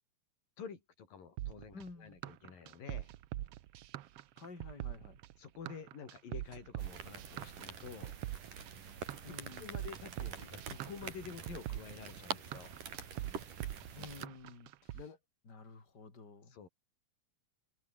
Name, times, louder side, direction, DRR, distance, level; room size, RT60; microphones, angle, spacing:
voice 1, 0.6-3.1 5.4-8.2 9.6-12.8 14.9-15.2 16.5-16.7, left 6 dB, 85° left, 5.6 m, -49 dB
sound 1, 1.4-15.0, right 14 dB, 90° right, 1.3 m, -43 dB
voice 2, 1.7-2.2 4.4-5.2 9.2-9.8 13.9-15.0 15.5-16.6, left 3 dB, 30° left, 5.1 m, -51 dB
sound 2, 6.8-14.3, right 7 dB, 70° right, 4.8 m, -46 dB
omnidirectional pair, 3.9 m